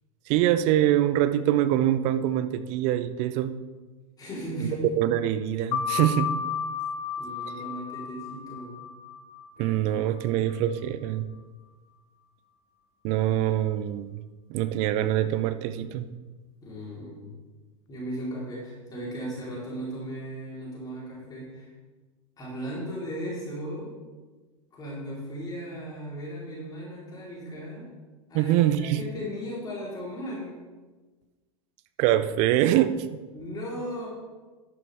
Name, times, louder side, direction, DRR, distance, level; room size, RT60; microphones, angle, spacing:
voice 1, 0.3-3.5 4.6-4.7 5.0-6.3 9.6-11.3 13.0-14.2 14.5-16.1 28.3-29.0 32.0-33.2, right 12 dB, 40° right, 11 dB, 0.6 m, -24 dB
voice 2, 4.2-4.9 7.2-8.8 16.6-17.3 17.9-21.7 22.4-24.0 24.7-27.9 28.3-30.6 33.3-34.1, equal, 20° left, -6 dB, 3.9 m, -36 dB
sound 1, 5.7-10.9, left 7 dB, 50° left, 1.0 m, -33 dB
11.5 x 11.0 x 3.5 m, 1.3 s
figure-of-eight pair, 90°, 18 cm